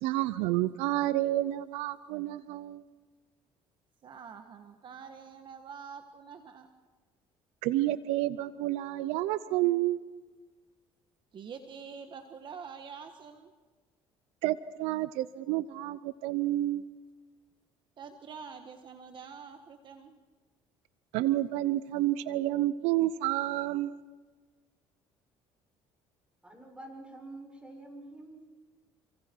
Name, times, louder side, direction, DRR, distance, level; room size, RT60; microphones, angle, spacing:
voice 1, 0.0-2.8 7.6-10.0 14.4-16.8 21.1-23.9, right 15 dB, 85° right, 16 dB, 0.7 m, -29 dB
voice 2, 4.0-6.7 11.3-13.5 18.0-20.2, right 6 dB, 50° right, 7 dB, 1.6 m, -46 dB
voice 3, 26.4-28.4, right 2 dB, 10° right, 1 dB, 6.8 m, -47 dB
27.5 x 25.5 x 4.7 m, 1.3 s
cardioid pair, 95°, 11 cm